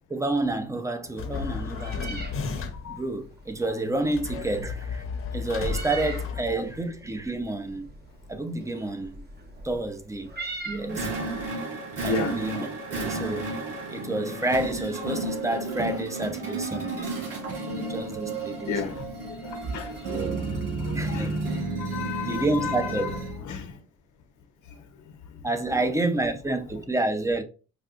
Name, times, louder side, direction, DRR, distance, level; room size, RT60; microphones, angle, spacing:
voice 1, 0.1-2.3 2.9-5.0 5.3-7.9 8.3-9.2 9.6-11.1 12.0-13.5 13.9-17.1 17.5-18.8 20.1-20.4 20.9-21.4 22.2-23.1 25.4-27.4, right 2 dB, 10° right, 0.5 m, -29 dB
sound 1, 1.2-3.0 4.1-7.0, left 5 dB, 45° left, 0.8 m, -33 dB
Meow, 1.3-11.5, right 3 dB, 35° right, 0.9 m, -42 dB
sound 2, 10.9-23.4, right 2 dB, 50° right, 2.0 m, -32 dB
voice 2, 18.6-19.1 19.4-20.0 20.5-21.3 21.8-23.1 23.4-23.8 25.7-25.8, left 5 dB, 75° left, 0.9 m, -33 dB
4.9 x 2.3 x 2.4 m
cardioid pair, 90°, 30 cm